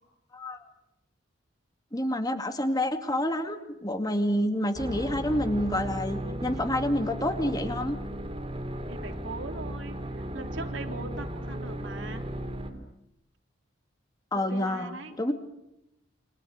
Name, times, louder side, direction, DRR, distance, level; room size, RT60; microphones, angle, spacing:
voice 1, 1.9-8.0 14.3-15.3, left 1 dB, 20° left, 6 dB, 2.3 m, -28 dB
sound 1, 4.7-12.7, right 1 dB, 30° right, 3.5 m, -35 dB
voice 2, 8.9-12.2 14.3-15.3, right 2 dB, 70° right, 5 dB, 3.4 m, -40 dB
29.0 x 25.0 x 6.6 m, 0.88 s
head